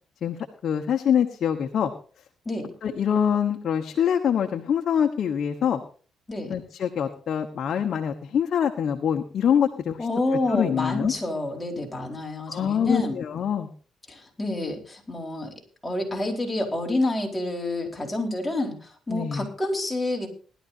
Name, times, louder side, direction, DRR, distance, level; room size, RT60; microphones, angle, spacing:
voice 1, 0.6-1.9 2.8-5.8 6.5-10.0 10.5-11.1 12.5-13.7 19.1-19.4, left 8 dB, 60° left, 4 dB, 1.2 m, -24 dB
voice 2, 10.0-13.2 14.1-15.5 15.8-20.3, left 2 dB, 15° left, 0 dB, 4.3 m, -28 dB
19.5 x 12.5 x 2.7 m, 0.39 s
cardioid pair, 90°, 0 cm